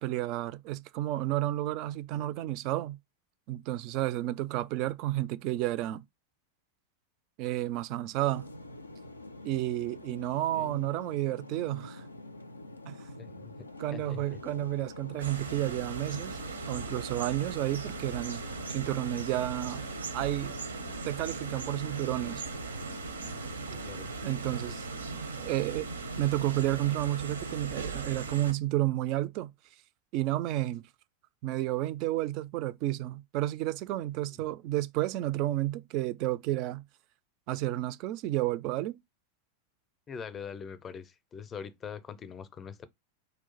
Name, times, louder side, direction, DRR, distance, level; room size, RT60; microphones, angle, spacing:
voice 1, 0.0-3.0 3.5-6.0 7.4-8.5 9.4-12.0 12.9-13.0 13.8-16.4 16.7-18.4 18.7-19.8 20.1-20.5 21.0-22.4 24.2-24.9 25.4-25.9 26.2-29.5 30.1-30.8 31.4-36.8 37.5-39.0, right 15 dB, 40° right, 0.3 m, -31 dB
sound 1, 8.2-27.7, left 2 dB, 80° left, 0.3 m, -45 dB
voice 2, 13.2-13.7 13.9-14.2 23.7-24.1 34.3-34.4 40.1-42.9, left 7 dB, 25° left, 0.5 m, -43 dB
sound 2, 15.2-28.5, right 4 dB, 75° right, 0.6 m, -39 dB
4.3 x 2.4 x 3.8 m
figure-of-eight pair, 90°, 0 cm